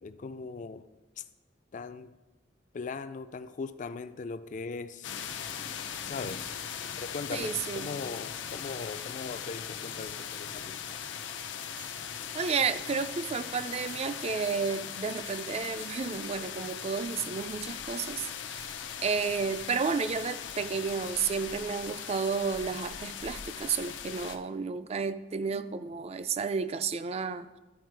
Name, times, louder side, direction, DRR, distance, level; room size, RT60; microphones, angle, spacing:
voice 1, 0.0-0.9 1.2-1.3 1.7-2.1 2.7-5.2 6.0-6.6 7.0-11.0, left 4 dB, 45° left, 0.4 m, -39 dB
sound 1, 5.0-24.4, left 8 dB, 90° left, 0.6 m, -39 dB
voice 2, 7.3-7.9 12.3-18.7 19.0-27.5, right 5 dB, 35° right, 0.3 m, -32 dB
sound 2, 11.8-12.1 12.4-13.4 13.9-14.8 15.3-15.5 15.8-16.4 16.8-17.3 18.0-18.1 18.6-18.9 19.2-19.7 20.2-20.7 21.3-22.6 23.0-23.1, right 4 dB, 75° right, 1.6 m, -55 dB
12.0 x 4.5 x 4.7 m
head